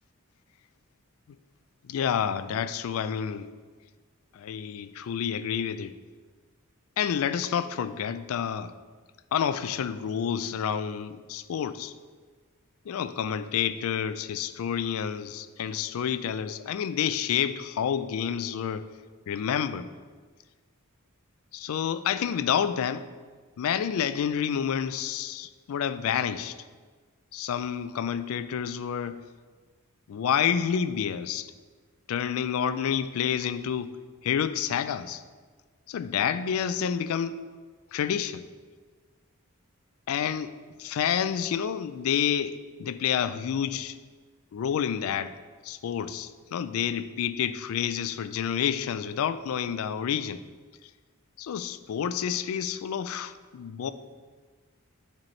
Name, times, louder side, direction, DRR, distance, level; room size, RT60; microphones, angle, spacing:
voice 1, 1.8-3.5 4.3-5.9 7.0-8.7 9.3-11.9 12.9-18.9 19.3-19.9 21.5-23.1 23.6-26.6 27.3-29.2 30.1-31.5 32.1-33.9 34.2-35.2 35.9-37.4 37.9-38.5 40.1-44.0 44.5-45.3 45.6-50.4 51.4-53.9, left 8 dB, 75° left, 13 dB, 0.3 m, -29 dB
8.8 x 4.4 x 3.1 m, 1.5 s
head